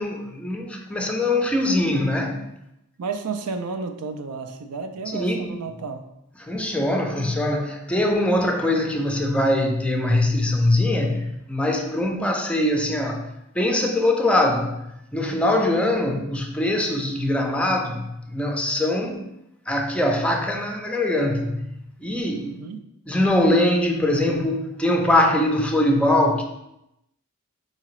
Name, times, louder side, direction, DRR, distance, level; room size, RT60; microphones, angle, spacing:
voice 1, 0.0-2.4 5.1-5.6 6.4-14.8 15.1-19.3 19.7-21.7 22.0-22.6 23.1-26.4, left 1 dB, 5° left, 0.4 m, -22 dB
voice 2, 3.0-6.0 22.4-22.9, right 4 dB, 85° right, 0.5 m, -32 dB
4.8 x 2.8 x 3.0 m
head